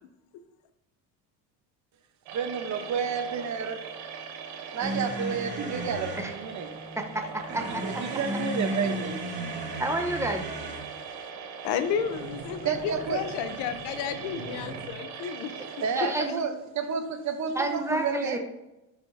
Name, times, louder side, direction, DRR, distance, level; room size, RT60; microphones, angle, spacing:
voice 1, 2.3-3.9 4.7-6.7 7.6-9.2 9.5-9.6 12.6-13.3 15.8-18.4, right 6 dB, 45° right, 7 dB, 0.9 m, -31 dB
sound 1, 2.3-16.3, right 6 dB, 85° right, 1.1 m, -40 dB
sound 2, 4.8-6.3 7.4-10.9 11.9-14.9, right 1 dB, 30° right, 2.2 m, -35 dB
voice 2, 7.0-7.8 9.8-10.4 16.0-16.4 17.5-18.4, right 1 dB, 5° right, 4 dB, 0.9 m, -29 dB
voice 3, 11.6-15.5, left 8 dB, 75° left, 10 dB, 0.8 m, -32 dB
11.5 x 5.2 x 2.7 m, 0.98 s
cardioid pair, 110°, 40 cm